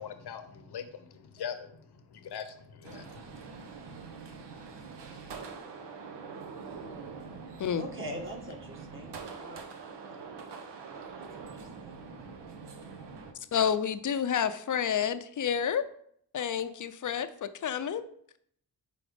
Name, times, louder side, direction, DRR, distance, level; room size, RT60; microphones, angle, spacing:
voice 1, 0.0-3.4, left 7 dB, 65° left, 0.9 m, -42 dB
sound 1, 2.8-13.3, right 5 dB, 75° right, 1.0 m, -44 dB
voice 2, 7.8-9.6 11.2-11.9, equal, 30° right, 1.7 m, -43 dB
voice 3, 13.5-15.8 16.3-18.0, left 8 dB, 45° left, 0.6 m, -29 dB
5.1 x 4.2 x 5.0 m
cardioid pair, 60°, 42 cm